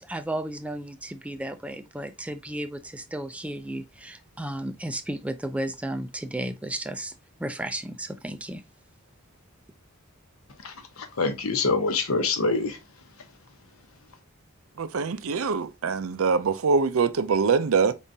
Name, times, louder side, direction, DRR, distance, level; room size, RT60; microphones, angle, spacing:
voice 1, 0.0-7.1 7.4-8.6, right 1 dB, 5° right, 0.3 m, -33 dB
voice 2, 10.6-12.8, left 3 dB, 70° left, 0.9 m, -26 dB
voice 3, 14.8-17.9, right 5 dB, 70° right, 0.5 m, -24 dB
4.9 x 3.7 x 2.7 m
head